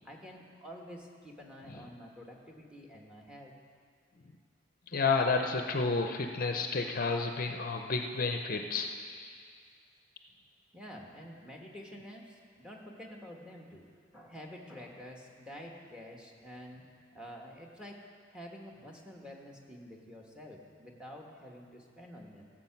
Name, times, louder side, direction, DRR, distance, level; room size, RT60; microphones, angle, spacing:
voice 1, 0.0-3.5 10.7-13.9 14.1-16.8 17.1-18.0 18.3-22.4, equal, 5° right, 0 dB, 1.3 m, -48 dB
voice 2, 4.9-9.3, left 4 dB, 50° left, 4 dB, 0.7 m, -31 dB
14.5 x 7.6 x 5.9 m, 2.1 s
head